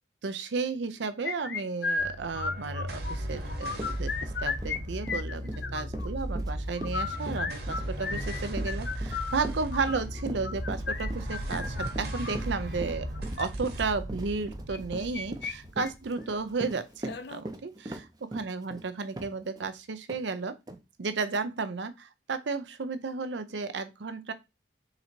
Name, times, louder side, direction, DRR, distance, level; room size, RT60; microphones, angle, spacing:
voice 1, 0.2-13.1 13.4-20.6 21.0-24.3, right 4 dB, 80° right, 0.6 m, -33 dB
sound 1, 1.2-3.1 3.5-4.8 5.0-6.1 6.8-12.4 13.1-13.5 14.7-15.5 15.8-15.9 16.3-16.4 17.0-17.4, left 4 dB, 65° left, 0.5 m, -34 dB
sound 2, 2.0-16.6, equal, 60° right, 1.2 m, -36 dB
Run, 3.3-3.4 3.7-19.7 20.1-20.2 20.7-20.8, right 1 dB, 20° right, 0.5 m, -41 dB
3.9 x 2.9 x 4.3 m
head